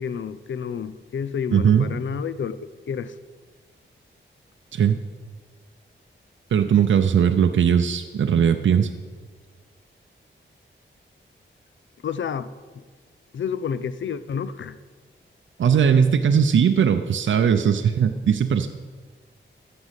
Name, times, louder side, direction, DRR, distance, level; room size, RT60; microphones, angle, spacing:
voice 1, 0.0-2.6 2.9-3.2 12.0-12.8 13.3-14.8, left 7 dB, 70° left, 14 dB, 0.6 m, -30 dB
voice 2, 1.5-2.0 4.7-5.0 6.5-8.9 15.6-18.7, right 7 dB, 70° right, 7 dB, 0.6 m, -19 dB
13.5 x 5.4 x 8.1 m, 1.5 s
wide cardioid pair, 110°, 20 cm